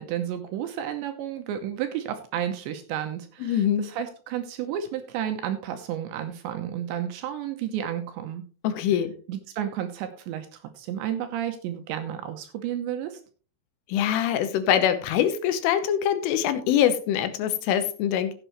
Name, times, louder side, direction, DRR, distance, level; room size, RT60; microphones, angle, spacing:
voice 1, 0.0-8.4 8.8-9.0 9.3-13.2, right 10 dB, 75° right, 7 dB, 2.8 m, -32 dB
voice 2, 3.4-3.9 8.6-9.1 13.9-18.3, left 10 dB, 80° left, 10 dB, 3.5 m, -24 dB
15.5 x 8.0 x 3.1 m, 0.38 s
omnidirectional pair, 5.8 m